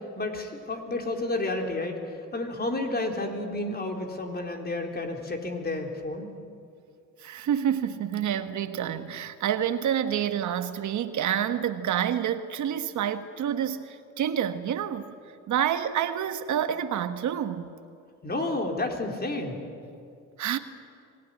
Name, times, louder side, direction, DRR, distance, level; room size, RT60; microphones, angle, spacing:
voice 1, 0.2-6.3 18.2-19.6, left 2 dB, 30° left, 4.0 m, -31 dB
voice 2, 7.2-15.1 15.5-17.7 20.4-20.6, right 9 dB, 70° right, 1.4 m, -28 dB
25.0 x 19.0 x 9.9 m
cardioid pair, 90°, 30 cm